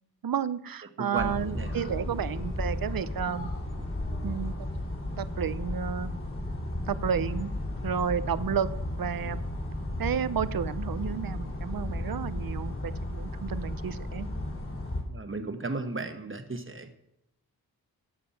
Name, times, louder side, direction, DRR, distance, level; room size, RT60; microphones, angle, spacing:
voice 1, 0.2-3.5 4.2-4.7 5.2-6.1 6.9-7.5 7.8-8.7 9.0-9.4 10.0-14.3, right 8 dB, 65° right, 16 dB, 0.6 m, -31 dB
voice 2, 1.0-1.8 15.1-17.0, right 3 dB, 35° right, 7 dB, 1.2 m, -35 dB
sound 1, 1.2-15.0, left 1 dB, 35° left, 3.2 m, -34 dB
12.5 x 7.3 x 5.8 m, 0.84 s
wide cardioid pair, 85°, 38 cm